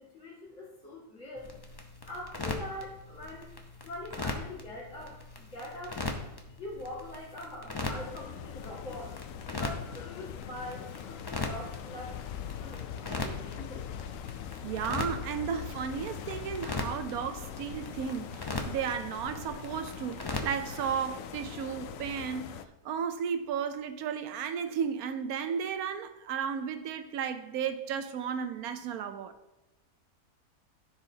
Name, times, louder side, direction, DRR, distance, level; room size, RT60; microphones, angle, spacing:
voice 1, 0.1-1.6 2.1-3.5 3.8-6.0 6.6-9.2 9.6-13.9, left 1 dB, 55° left, 2.4 m, -43 dB
sound 1, 1.4-20.8, left 2 dB, 25° left, 0.5 m, -40 dB
sound 2, 7.9-22.6, left 9 dB, 70° left, 0.9 m, -43 dB
sound 3, 8.9-21.7 22.0-22.1, left 10 dB, 90° left, 0.5 m, -47 dB
voice 2, 14.6-22.6 22.8-29.3, right 7 dB, 75° right, 1.1 m, -34 dB
14.5 x 5.0 x 2.8 m
omnidirectional pair, 1.6 m